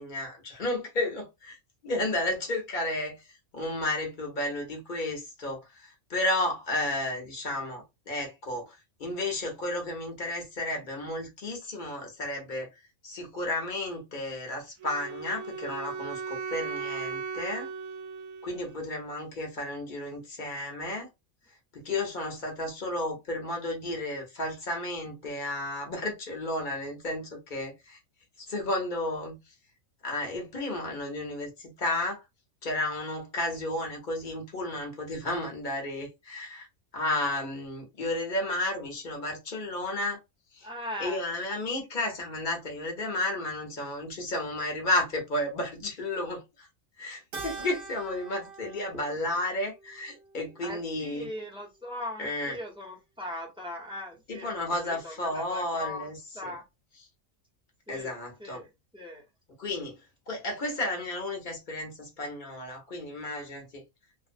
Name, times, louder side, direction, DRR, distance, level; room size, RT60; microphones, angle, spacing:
voice 1, 0.0-1.6 1.8-12.7 13.0-17.7 18.4-21.1 21.7-28.0 28.4-29.4 30.0-32.2 32.6-36.7 36.9-40.2 40.5-40.7 41.0-46.7 47.0-51.3 52.2-52.6 54.3-56.2 56.4-56.5 57.9-58.6 59.6-60.0 60.3-63.8, left 1 dB, 45° left, 0.8 m, -32 dB
Wind instrument woodwind instrument, 14.8-18.9, right 5 dB, 90° right, 1.0 m, -37 dB
voice 2, 40.6-41.2 50.6-54.6 54.8-56.1 56.3-56.6 57.9-59.2, left 1 dB, 5° right, 0.6 m, -40 dB
Keyboard (musical), 47.3-51.9, right 4 dB, 55° right, 0.9 m, -45 dB
2.5 x 2.0 x 2.5 m
omnidirectional pair, 1.4 m